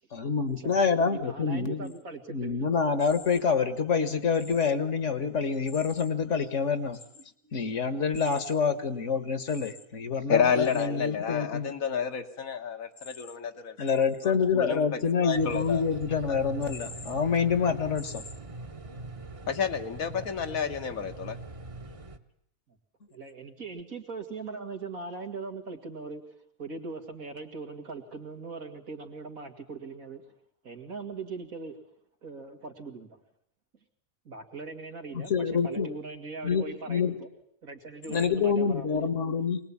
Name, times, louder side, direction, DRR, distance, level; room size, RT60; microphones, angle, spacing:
voice 1, 0.1-1.9 2.3-7.0 7.5-11.7 13.8-18.2 35.1-35.9 36.4-37.1 38.1-39.6, left 5 dB, 60° left, 12 dB, 1.7 m, -27 dB
voice 2, 1.1-2.6 20.2-20.3 23.1-26.2 26.6-30.2 30.6-31.8 32.2-33.2 34.2-35.3 35.6-37.3 37.6-39.0, right 4 dB, 90° right, 4 dB, 2.7 m, -40 dB
voice 3, 10.3-14.9 15.2-15.8 16.3-16.4 19.5-21.4, left 7 dB, 80° left, 6 dB, 1.8 m, -30 dB
sound 1, 15.3-22.2, right 2 dB, 25° right, 1.1 m, -42 dB
24.5 x 19.5 x 8.6 m, 0.71 s
omnidirectional pair, 1.4 m